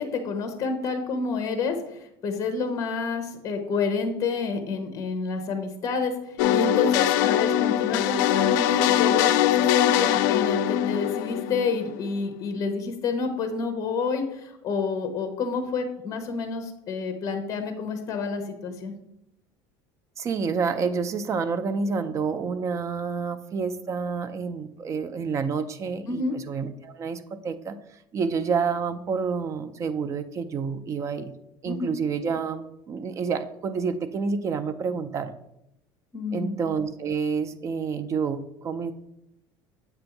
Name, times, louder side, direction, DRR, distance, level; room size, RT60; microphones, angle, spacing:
voice 1, 0.0-18.9 26.1-26.4 31.6-31.9 36.1-36.6, left 4 dB, 35° left, 6 dB, 0.9 m, -29 dB
sound 1, 6.4-12.1, left 11 dB, 80° left, 0.4 m, -22 dB
voice 2, 20.2-27.8 28.1-31.3 31.6-35.4 36.3-38.9, right 5 dB, 30° right, 11 dB, 0.4 m, -29 dB
7.7 x 2.6 x 5.8 m, 0.81 s
cardioid pair, 140°, 10 cm